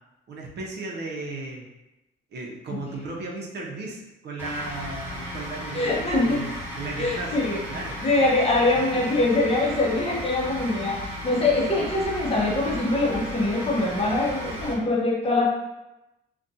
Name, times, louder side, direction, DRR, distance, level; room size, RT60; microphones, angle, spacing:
voice 1, 0.3-1.6 2.3-7.4 7.7-8.0 8.7-9.2, right 2 dB, 60° right, -1 dB, 0.6 m, -35 dB
sound 1, 4.4-14.7, equal, 10° right, 1.0 m, -35 dB
voice 2, 5.7-6.4 7.0-7.6 8.0-15.5, left 2 dB, 30° left, -3 dB, 0.7 m, -23 dB
2.5 x 2.2 x 2.6 m, 0.95 s
cardioid pair, 90°, 20 cm